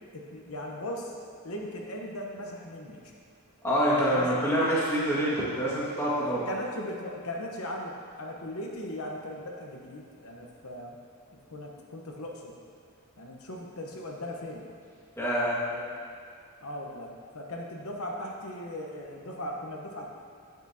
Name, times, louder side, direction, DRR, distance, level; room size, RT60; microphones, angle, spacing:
voice 1, 0.1-1.1 1.4-3.1 4.1-4.3 6.2-11.0 11.5-12.6 13.2-14.7 15.7-15.9 16.6-20.1, left 1 dB, 75° left, 0 dB, 1.0 m, -38 dB
voice 2, 3.6-6.5 15.2-15.6, equal, 10° left, -8 dB, 1.7 m, -26 dB
8.7 x 7.9 x 2.8 m, 2.3 s
head